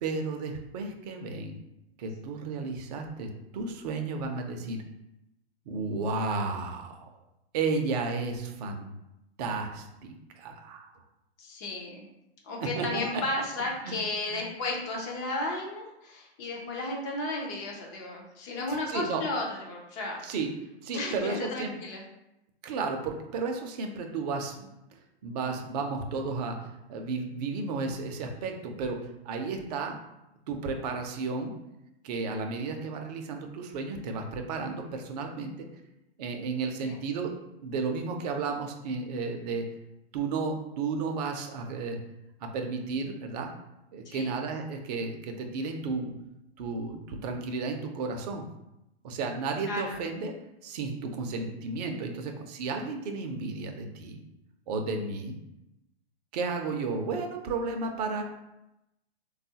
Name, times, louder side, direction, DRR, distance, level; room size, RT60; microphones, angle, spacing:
voice 1, 0.0-1.6 2.0-4.8 5.7-7.1 7.5-8.9 9.4-10.9 12.8-13.2 13.8-14.0 14.3-14.4 18.9-19.2 20.2-20.5 20.8-21.7 22.6-24.7 25.2-30.0 30.5-31.5 32.0-35.7 36.2-37.3 37.6-39.7 40.1-42.0 42.4-43.5 43.9-46.1 46.6-48.5 49.0-50.3 50.6-54.2 54.7-55.3 56.3-58.2, right 4 dB, 40° right, 4 dB, 0.5 m, -33 dB
voice 2, 11.4-12.1 12.4-20.2 20.9-22.0 36.8-37.0 44.1-44.3 49.6-50.0, left 2 dB, 20° left, -1 dB, 0.3 m, -34 dB
3.6 x 2.3 x 2.7 m, 0.88 s
hypercardioid pair, 135°, 33 cm